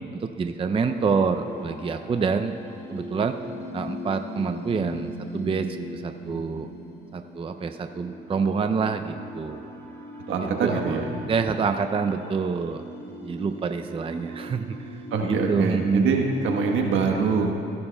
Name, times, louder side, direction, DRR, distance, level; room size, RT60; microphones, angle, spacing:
voice 1, 0.1-2.5 2.9-3.4 3.7-6.7 7.1-9.6 10.4-12.8 13.2-16.1, right 5 dB, 25° right, 7 dB, 0.5 m, -27 dB
sound 1, 0.7-16.8, left 1 dB, 10° left, 2.0 m, -39 dB
voice 2, 10.3-11.1 15.1-17.5, right 5 dB, 80° right, 2 dB, 1.3 m, -24 dB
18.0 x 11.0 x 2.3 m, 2.6 s
cardioid pair, 90°, 20 cm